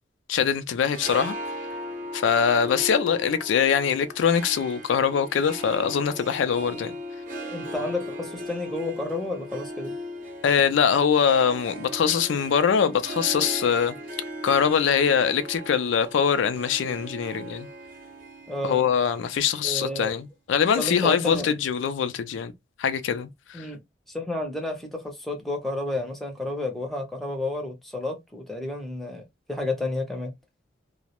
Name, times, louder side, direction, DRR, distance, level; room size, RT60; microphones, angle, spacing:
voice 1, 0.3-1.3 2.1-7.0 10.4-13.9 14.4-17.7 18.6-22.5 22.8-23.7, left 7 dB, 80° left, 0.3 m, -23 dB
Harp, 0.8-20.1, equal, 45° right, 0.7 m, -38 dB
voice 2, 7.4-9.9 18.5-18.8 19.6-20.1 20.8-21.5 23.5-23.8 24.1-29.2 29.5-30.3, left 2 dB, ahead, 0.5 m, -31 dB
2.2 x 2.0 x 2.8 m
head